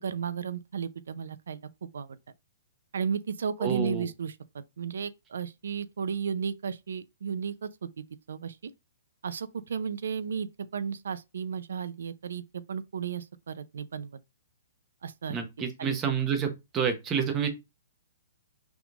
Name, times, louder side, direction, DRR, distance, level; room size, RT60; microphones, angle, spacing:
voice 1, 0.0-2.2 2.9-7.7 8.0-8.7 9.2-14.2 15.0-15.4 15.8-16.0, right 6 dB, 90° right, 0.5 m, -34 dB
voice 2, 3.6-4.1 15.3-17.5, right 7 dB, 15° right, 0.8 m, -29 dB
6.0 x 3.6 x 2.4 m
hypercardioid pair, 175°, 0 cm